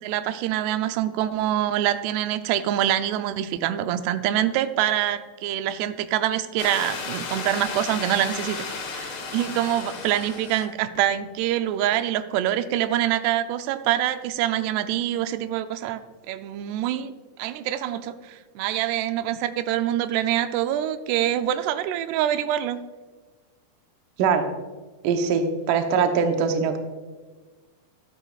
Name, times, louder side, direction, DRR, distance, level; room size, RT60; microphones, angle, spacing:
voice 1, 0.0-16.0 16.3-17.1 17.4-22.8, right 12 dB, 90° right, 10 dB, 2.6 m, -25 dB
sound 1, 6.6-10.7 10.9-11.0, left 4 dB, 90° left, 1.2 m, -34 dB
voice 2, 25.0-26.8, right 6 dB, 75° right, 6 dB, 2.1 m, -22 dB
12.5 x 12.0 x 2.3 m, 1.3 s
omnidirectional pair, 4.6 m